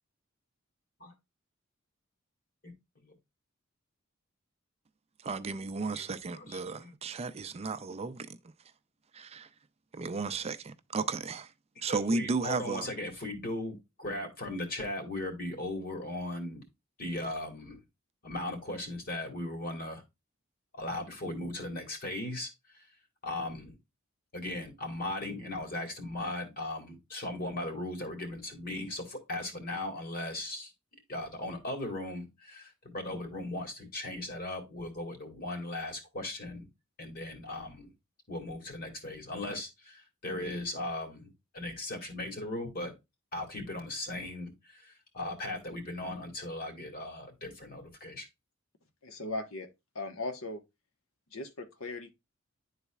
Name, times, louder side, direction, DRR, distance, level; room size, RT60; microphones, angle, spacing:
voice 1, 5.2-8.3 9.1-9.5 9.9-11.5 11.8-12.9, right 4 dB, 30° right, 0.4 m, -34 dB
voice 2, 5.9-6.9 11.8-16.6 17.0-17.8 18.2-20.0 20.7-22.8 23.2-23.8 24.3-30.7 31.1-36.7 37.0-37.9 38.3-42.9 43.3-48.3, left 1 dB, 50° left, 2.0 m, -38 dB
voice 3, 49.0-49.7 49.9-50.6 51.3-52.1, left 2 dB, 85° left, 1.1 m, -38 dB
11.0 x 4.0 x 2.2 m
head